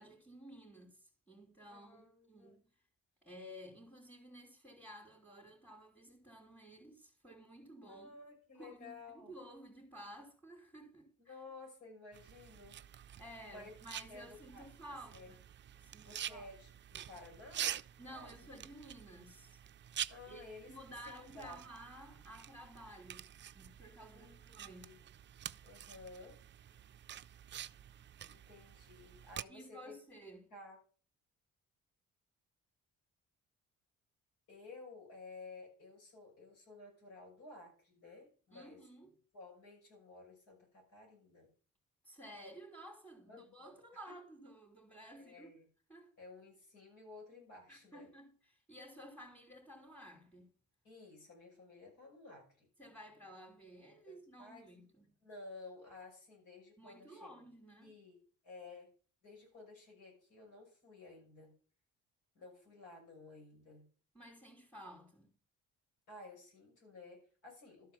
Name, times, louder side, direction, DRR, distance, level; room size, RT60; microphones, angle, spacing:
voice 1, 0.0-2.6 3.2-8.1 8.5-11.4 13.2-15.4 15.8-16.5 18.0-19.6 20.3-23.3 23.5-25.0 29.5-30.5 38.5-39.1 42.0-45.5 45.9-46.1 47.7-50.5 52.8-55.2 56.8-58.0 64.1-65.3, equal, 5° left, 3.1 m, -54 dB
voice 2, 1.7-2.6 7.9-9.3 11.3-12.8 13.5-13.7 14.1-14.7 15.1-15.3 16.0-17.8 18.1-18.5 20.1-21.6 24.1-25.0 25.6-26.4 28.3-30.0 30.5-30.8 34.5-38.8 39.3-41.5 43.3-43.8 45.2-45.6 46.2-48.1 50.8-52.7 54.1-54.7 55.2-57.3 57.8-58.2 58.4-58.9 59.2-61.5 62.3-63.8 66.1-67.9, left 3 dB, 85° left, 6.4 m, -54 dB
sound 1, 12.1-29.4, right 10 dB, 40° right, 0.4 m, -47 dB
12.5 x 4.4 x 7.2 m
cardioid pair, 90°, 30 cm